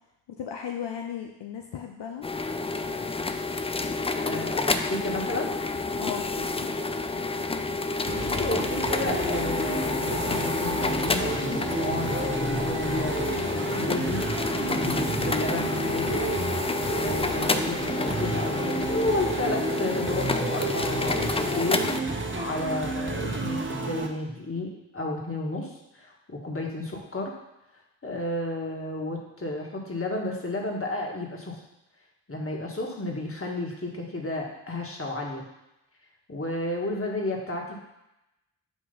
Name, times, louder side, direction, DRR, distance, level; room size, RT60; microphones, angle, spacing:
voice 1, 0.4-2.2 6.0-6.7, left 8 dB, 70° left, 2 dB, 0.7 m, -36 dB
sound 1, 2.2-22.0, left 3 dB, 15° left, 0.4 m, -29 dB
voice 2, 4.2-5.5 7.9-16.2 17.0-27.3 28.0-31.6 32.3-35.4 36.3-37.8, left 2 dB, 30° left, -1 dB, 1.8 m, -32 dB
sound 2, 8.1-24.1, right 3 dB, 25° right, 1.0 m, -32 dB
sound 3, 12.5-23.1, right 4 dB, ahead, 1.4 m, -47 dB
7.8 x 2.8 x 5.3 m, 0.91 s
supercardioid pair, 45°, 44 cm